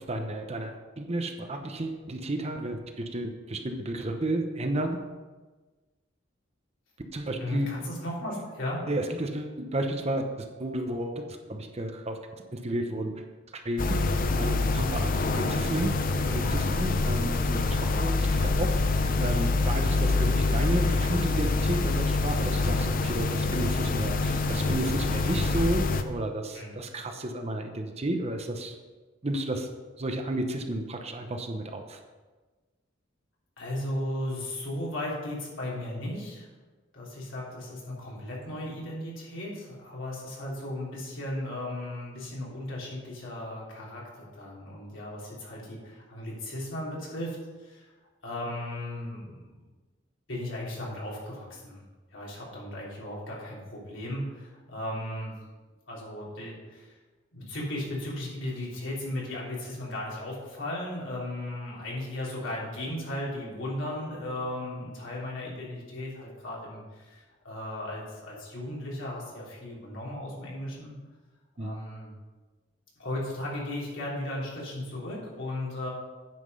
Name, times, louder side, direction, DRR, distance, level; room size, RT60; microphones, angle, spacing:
voice 1, 0.0-5.0 7.1-7.7 8.9-13.2 13.5-14.0 14.4-18.7 19.0-28.8 29.2-29.7 30.0-32.0 71.6-71.8, right 1 dB, 35° right, 5 dB, 0.8 m, -32 dB
voice 2, 7.4-8.8 26.5-26.7 33.6-36.5 36.9-47.9 48.2-49.5 50.3-51.8 52.1-55.4 55.9-57.0 57.3-71.0 71.5-72.1 73.0-75.9, left 1 dB, 75° left, -5 dB, 3.3 m, -36 dB
sound 1, 13.8-26.0, left 3 dB, 45° left, 0.6 m, -26 dB
9.4 x 5.9 x 5.4 m, 1.3 s
head